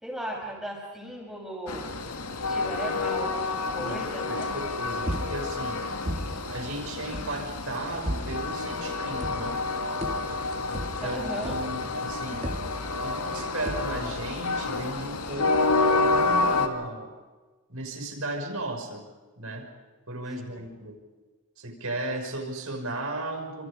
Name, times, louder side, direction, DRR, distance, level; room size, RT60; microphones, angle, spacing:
voice 1, 0.0-1.9 2.5-4.5 11.0-11.6 20.5-20.7, right 1 dB, ahead, -2 dB, 6.3 m, -36 dB
Train, 1.7-16.7, left 3 dB, 85° left, 2.0 m, -29 dB
voice 2, 3.8-5.8 6.5-9.6 10.7-12.4 13.0-17.1 17.7-19.0 19.4-19.7 20.1-20.9 21.6-23.7, right 2 dB, 70° right, 3 dB, 6.0 m, -35 dB
sound 1, 5.1-5.7 6.0-6.6 7.1-7.5 8.0-8.6 9.2-9.7 10.0-11.9 12.4-13.2 13.6-14.2, equal, 30° right, 2.8 m, -35 dB
28.0 x 27.0 x 5.2 m, 1.3 s
head